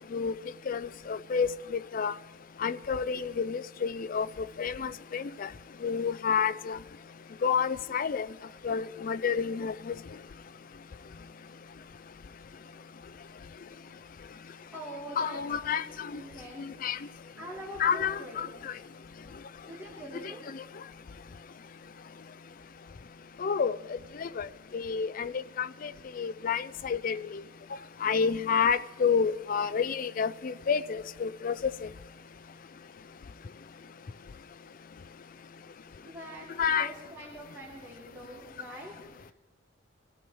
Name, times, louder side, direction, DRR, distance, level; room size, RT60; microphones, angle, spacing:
voice 1, 0.7-2.1 2.6-5.5 5.8-6.8 7.4-8.3 8.6-9.9 15.2-16.1 16.6-17.0 17.8-18.7 23.4-24.5 24.7-27.4 28.0-31.9 36.6-36.9, left 6 dB, 45° left, 0.4 m, -30 dB
voice 2, 14.7-15.8 16.1-16.6 17.4-18.5 19.7-20.5 36.0-39.3, right 1 dB, 10° right, 3.3 m, -44 dB
26.0 x 14.5 x 3.1 m
head